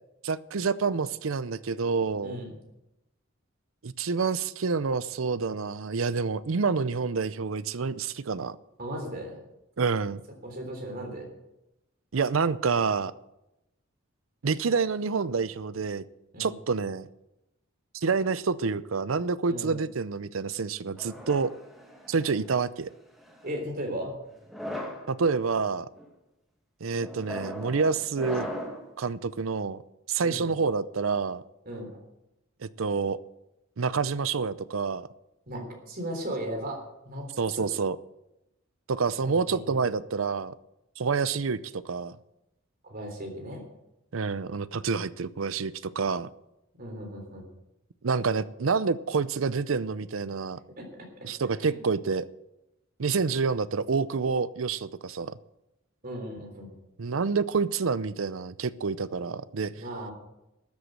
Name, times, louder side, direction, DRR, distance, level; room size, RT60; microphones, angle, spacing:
voice 1, 0.2-2.4 3.8-8.6 9.8-10.2 12.1-13.1 14.4-16.0 16.4-17.1 17.9-21.5 22.1-22.9 25.1-25.9 26.8-28.5 29.0-29.8 30.1-31.4 32.6-33.2 33.8-35.1 37.4-38.0 38.9-40.5 41.0-42.2 44.1-46.3 48.0-50.6 51.2-52.3 53.0-55.4 57.0-59.7, right 5 dB, 85° right, 16 dB, 0.6 m, -28 dB
voice 2, 8.8-9.4 10.4-11.3 16.3-16.6 19.5-19.8 23.4-24.1 30.2-30.5 31.7-32.0 35.5-36.8 37.1-37.3 37.5-37.6 39.2-39.8 42.8-43.6 46.8-47.4 50.8-51.1 51.6-51.8 56.0-56.7 59.8-60.1, equal, 50° right, 2 dB, 3.6 m, -36 dB
sound 1, 21.0-22.4 23.2-23.6 24.4-25.1 25.7-26.1 27.0-28.9, left 1 dB, ahead, 2.2 m, -38 dB
13.5 x 8.2 x 7.9 m, 0.90 s
head